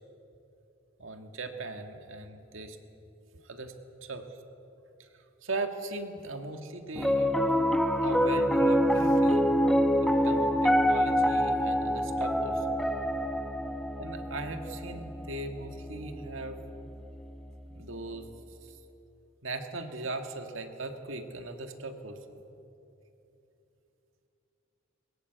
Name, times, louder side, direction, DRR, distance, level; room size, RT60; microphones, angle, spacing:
voice 1, 1.0-2.8 3.4-3.7 4.0-4.3 5.0-5.1 5.4-7.4 8.0-9.5 10.0-12.8 14.0-16.6 17.7-18.3 18.6-18.8 19.4-22.2, right 2 dB, 85° right, 6 dB, 1.8 m, -39 dB
Piano, 7.0-17.3, equal, 5° left, 0.9 m, -26 dB
22.0 x 20.0 x 8.0 m, 2.9 s
head